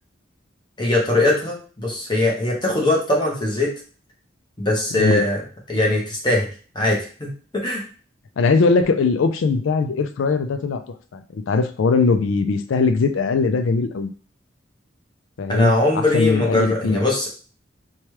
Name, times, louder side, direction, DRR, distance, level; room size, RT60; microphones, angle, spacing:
voice 1, 0.8-3.7 4.6-5.4 5.7-6.5 6.7-7.8 15.5-17.3, left 2 dB, 25° left, -2 dB, 0.8 m, -21 dB
voice 2, 4.9-5.3 8.4-10.8 11.1-14.1 15.4-17.0, left 4 dB, 80° left, 8 dB, 0.4 m, -20 dB
2.9 x 2.3 x 3.1 m, 0.38 s
head